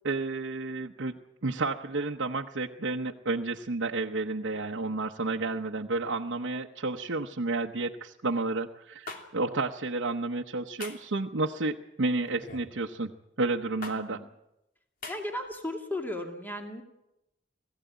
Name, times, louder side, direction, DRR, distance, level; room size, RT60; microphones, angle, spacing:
voice 1, 0.0-1.1 1.4-13.1 13.4-14.2, right 3 dB, 85° right, 1 dB, 0.9 m, -31 dB
sound 1, 9.1-9.2 10.8-11.1 12.4-12.7 13.8-14.0 15.0-15.2, left 3 dB, 50° left, 2.9 m, -40 dB
voice 2, 13.9-14.3 15.1-16.8, left 1 dB, 10° left, 3 dB, 2.2 m, -36 dB
20.5 x 15.5 x 9.3 m, 0.91 s
head